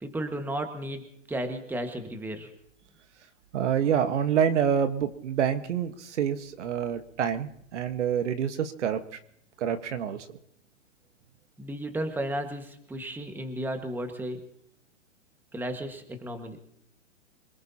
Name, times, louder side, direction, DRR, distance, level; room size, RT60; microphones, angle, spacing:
voice 1, 0.0-2.5 11.6-14.4 15.5-16.6, right 1 dB, 5° right, 6 dB, 1.6 m, -34 dB
voice 2, 3.5-9.0 9.6-10.2, right 8 dB, 65° right, 9 dB, 1.5 m, -27 dB
26.5 x 19.0 x 2.9 m, 0.69 s
hypercardioid pair, 130°, 38 cm